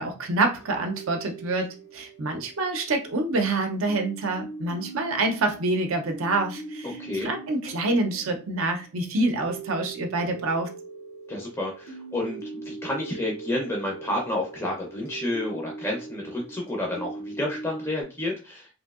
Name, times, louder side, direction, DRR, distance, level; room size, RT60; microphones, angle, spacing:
voice 1, 0.0-10.7, right 2 dB, 70° right, 4 dB, 0.5 m, -27 dB
sound 1, 0.6-3.4 3.9-18.0, right 3 dB, 65° left, 0.7 m, -41 dB
voice 2, 7.0-7.3 11.3-18.7, left 1 dB, 10° left, -1 dB, 0.5 m, -30 dB
3.0 x 2.6 x 2.3 m, 0.33 s
head